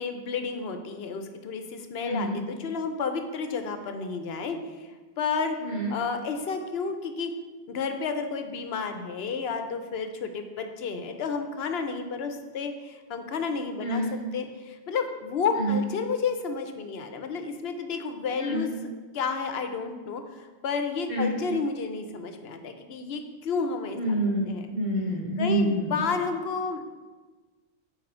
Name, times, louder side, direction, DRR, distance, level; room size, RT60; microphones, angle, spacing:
voice 1, 0.0-4.9 5.2-5.6 5.9-7.3 7.7-18.7 19.1-24.0 24.5-24.7 25.4-26.8, left 5 dB, 65° left, 7 dB, 0.9 m, -31 dB
voice 2, 2.0-2.4 5.6-5.9 13.8-14.2 15.5-15.8 18.4-18.7 21.1-21.4 23.9-24.4 24.7-25.9, right 1 dB, 30° right, -8 dB, 2.3 m, -27 dB
7.7 x 4.7 x 4.3 m, 1.3 s
omnidirectional pair, 1.1 m